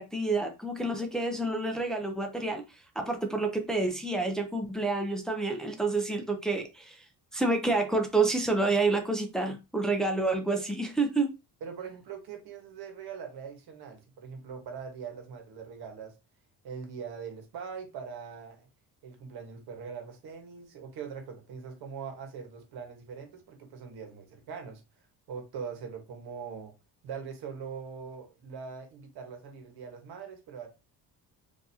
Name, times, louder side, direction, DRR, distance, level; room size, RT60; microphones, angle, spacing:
voice 1, 0.0-2.6 3.0-7.0 7.3-11.3, right 3 dB, ahead, 0.6 m, -28 dB
voice 2, 11.6-16.1 16.6-18.7 19.0-24.8 25.3-26.7 27.0-30.7, right 6 dB, 80° right, 1.4 m, -42 dB
4.3 x 2.9 x 2.7 m
cardioid pair, 115°, 38 cm